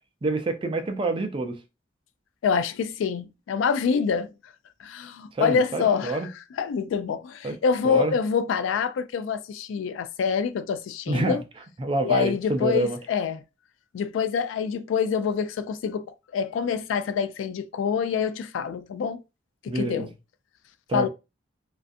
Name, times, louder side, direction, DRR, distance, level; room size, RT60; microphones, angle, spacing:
voice 1, 0.2-1.6 5.4-6.3 7.4-7.6 7.8-8.1 11.1-11.4 11.8-13.0 19.7-20.1 20.9-21.1, right 2 dB, 25° right, 0.3 m, -27 dB
voice 2, 2.4-4.3 4.8-6.2 6.6-11.4 12.0-13.4 13.9-19.2 19.6-20.1 20.9-21.1, left 6 dB, 85° left, 0.3 m, -26 dB
2.4 x 2.3 x 2.5 m
head